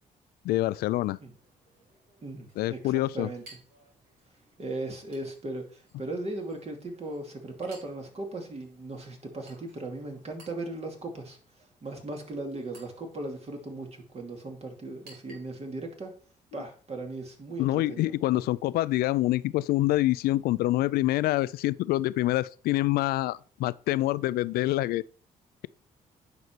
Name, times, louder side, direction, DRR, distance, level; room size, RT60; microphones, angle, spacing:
voice 1, 0.4-1.2 2.6-3.3 17.6-25.0, left 16 dB, 85° left, 0.4 m, -26 dB
Chink clink, 0.9-15.9, right 2 dB, 90° right, 4.2 m, -59 dB
voice 2, 2.2-3.4 4.6-11.4 11.8-16.1 16.5-18.5, right 2 dB, 45° right, 2.6 m, -38 dB
9.5 x 5.4 x 4.5 m
cardioid pair, 70°, 15 cm